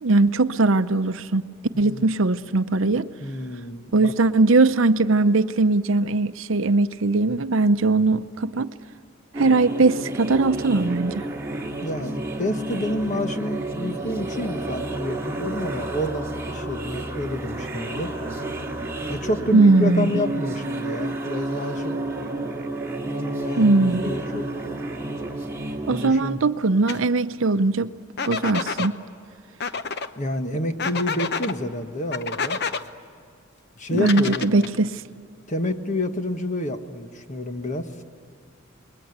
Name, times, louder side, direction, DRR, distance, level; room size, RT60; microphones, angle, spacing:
voice 1, 0.0-1.4 1.8-3.1 3.9-8.7 9.4-11.3 19.5-20.2 23.6-24.0 25.9-27.9 28.3-28.9 33.9-35.0, right 3 dB, 65° right, 0.7 m, -20 dB
voice 2, 1.7-2.1 3.2-4.1 11.8-18.1 19.1-22.0 23.1-24.5 25.9-26.4 30.2-32.6 33.8-34.7 35.5-37.9, left 1 dB, 35° left, 1.3 m, -29 dB
sound 1, 9.3-26.1, right 2 dB, 15° right, 2.3 m, -31 dB
sound 2, 26.9-27.0 28.2-28.9 29.6-30.1 30.8-31.5 32.1-32.8 34.0-34.8, left 5 dB, 50° left, 0.9 m, -28 dB
28.0 x 22.0 x 8.1 m
head